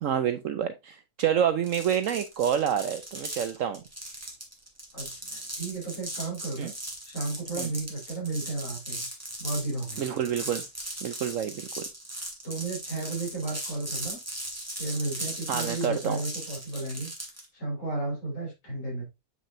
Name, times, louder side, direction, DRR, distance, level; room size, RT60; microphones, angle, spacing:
voice 1, 0.0-3.8 6.6-6.7 7.6-7.7 10.0-10.6 11.0-11.8 15.5-16.2, right 9 dB, 65° right, 1.0 m, -28 dB
sound 1, 1.6-17.5, right 1 dB, 10° right, 2.4 m, -38 dB
voice 2, 4.9-6.7 7.0-9.1 9.4-10.1 12.4-14.2 14.8-17.1 17.5-19.0, right 2 dB, 60° left, 4.9 m, -33 dB
8.0 x 6.1 x 2.6 m
omnidirectional pair, 1.6 m